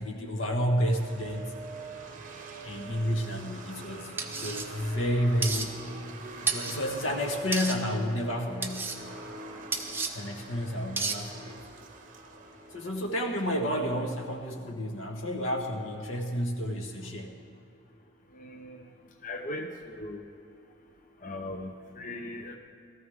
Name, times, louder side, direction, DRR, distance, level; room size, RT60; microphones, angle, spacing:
voice 1, 0.0-1.5 2.6-5.7 6.3-9.0 10.1-11.6 12.7-17.4, equal, 85° left, 3 dB, 1.4 m, -31 dB
sound 1, 0.9-14.0, right 3 dB, 40° right, 1.0 m, -45 dB
sound 2, 4.2-4.7 5.4-5.7 6.5-6.8 7.5-7.8 8.6-9.0 9.7-10.1 11.0-11.2, right 4 dB, 10° right, 0.8 m, -31 dB
voice 2, 18.3-18.8 19.2-20.2 21.2-22.6, left 1 dB, 40° left, 3 dB, 0.7 m, -38 dB
17.5 x 13.5 x 3.6 m, 2.7 s
head